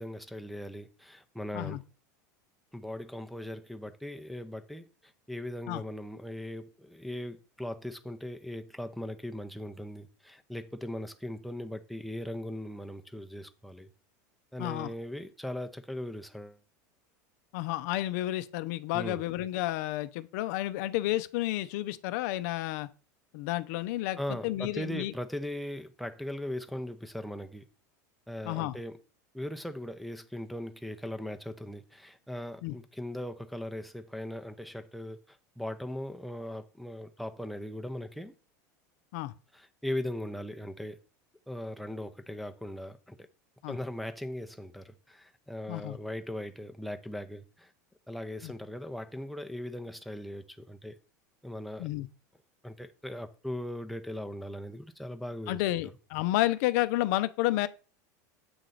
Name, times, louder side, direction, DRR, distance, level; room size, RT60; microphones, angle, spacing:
voice 1, 0.0-1.8 2.7-13.9 14.5-16.6 18.9-19.2 24.2-27.7 28.3-29.0 29.3-38.3 39.5-41.0 41.5-43.3 43.7-47.7 48.1-51.0 51.4-51.9 52.6-55.6, left 1 dB, ahead, 0.6 m, -39 dB
voice 2, 14.6-14.9 17.5-22.9 23.3-25.1 28.4-28.8 32.6-32.7 39.1-39.3 43.6-43.8 45.7-46.0 48.4-48.5 51.8-52.1 55.5-57.7, left 16 dB, 65° left, 0.5 m, -31 dB
7.8 x 3.1 x 3.9 m
supercardioid pair, 110°, 10 cm